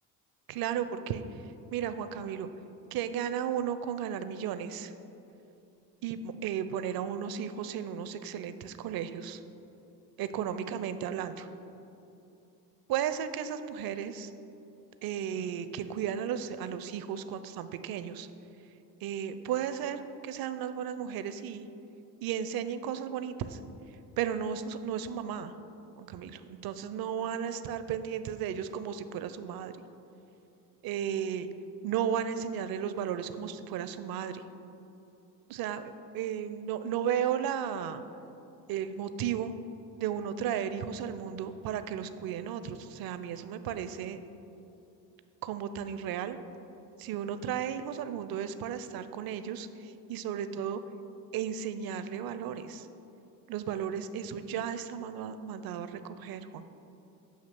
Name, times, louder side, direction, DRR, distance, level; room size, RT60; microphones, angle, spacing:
voice 1, 0.5-1.2 1.7-2.5 2.9-4.9 6.0-9.4 10.2-11.5 12.9-14.3 15.0-18.3 19.0-21.7 22.2-23.6 24.2-25.5 26.0-29.7 30.8-31.5 31.8-34.4 35.5-38.0 38.7-39.5 40.0-44.2 45.4-46.4 47.0-50.8 51.3-52.9 53.5-56.6, right 8 dB, 50° right, 11 dB, 0.5 m, -34 dB
8.0 x 2.8 x 5.8 m, 2.9 s
hypercardioid pair, 65°, 50 cm